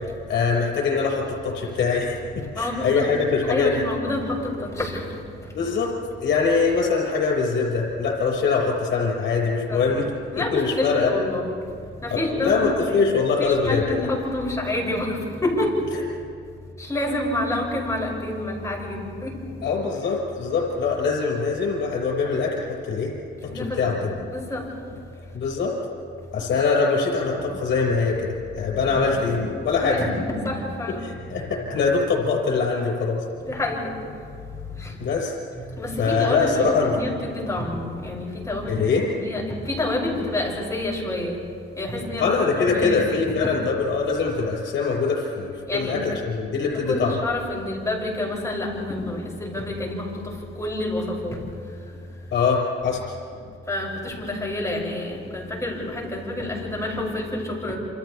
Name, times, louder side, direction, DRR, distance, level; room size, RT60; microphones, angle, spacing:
voice 1, 0.3-2.2 2.5-3.7 5.5-5.9 6.2-10.0 10.4-11.1 12.1-14.1 19.6-23.1 23.5-24.0 25.3-25.7 26.3-29.4 29.7-30.0 31.0-33.2 35.0-35.4 36.0-36.9 38.7-39.1 42.2-47.2 52.3-53.0, left 5 dB, 70° left, -1 dB, 5.8 m, -23 dB
voice 2, 2.5-3.1 3.5-5.2 9.7-9.9 10.3-11.6 12.0-13.0 13.4-15.9 16.8-19.4 23.4-24.7 29.8-31.4 33.4-34.0 34.7-35.1 35.5-41.4 41.8-43.5 45.7-46.0 46.7-51.5 53.7-57.8, left 1 dB, 15° left, -3 dB, 6.8 m, -28 dB
28.0 x 28.0 x 3.5 m, 2.3 s
cardioid pair, 90°, 20 cm